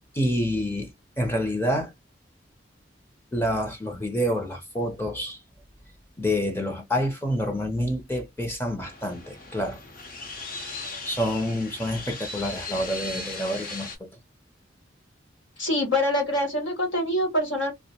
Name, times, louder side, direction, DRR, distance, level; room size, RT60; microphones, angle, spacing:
voice 1, 0.1-0.9 1.2-1.9 3.3-5.4 6.2-9.8 11.0-13.9, equal, 10° left, 0.5 m, -27 dB
sound 1, 8.8-14.0, left 3 dB, 45° left, 0.8 m, -37 dB
voice 2, 15.6-17.7, left 1 dB, 85° left, 1.4 m, -25 dB
2.5 x 2.1 x 2.7 m
head